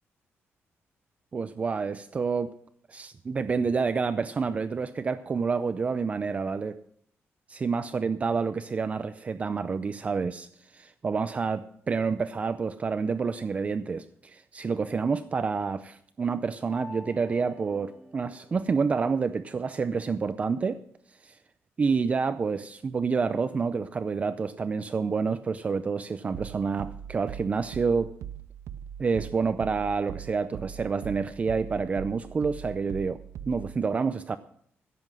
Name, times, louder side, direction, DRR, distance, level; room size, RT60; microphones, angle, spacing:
voice 1, 1.3-2.5 2.9-6.8 7.5-10.5 10.7-20.8 21.2-21.4 21.8-28.1 29.0-34.4, right 5 dB, 30° right, 11 dB, 0.5 m, -28 dB
sound 1, 16.7-19.6, equal, 10° left, 5.0 m, -47 dB
sound 2, 26.3-33.8, right 10 dB, 85° right, 0.5 m, -41 dB
15.5 x 7.6 x 6.2 m, 0.65 s
wide cardioid pair, 150°, 5 cm